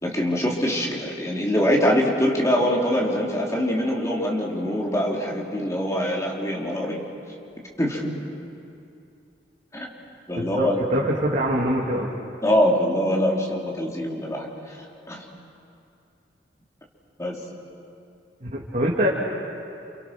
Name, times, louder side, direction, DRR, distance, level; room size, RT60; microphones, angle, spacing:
voice 1, 0.0-7.0 7.6-8.1 9.7-9.9 10.3-10.8 12.4-14.8 15.1-15.2 17.2-17.4, equal, 20° left, -2 dB, 3.6 m, -24 dB
voice 2, 10.3-12.1 18.4-19.1, equal, 45° right, -4 dB, 2.7 m, -24 dB
29.5 x 29.0 x 6.2 m, 2.6 s
head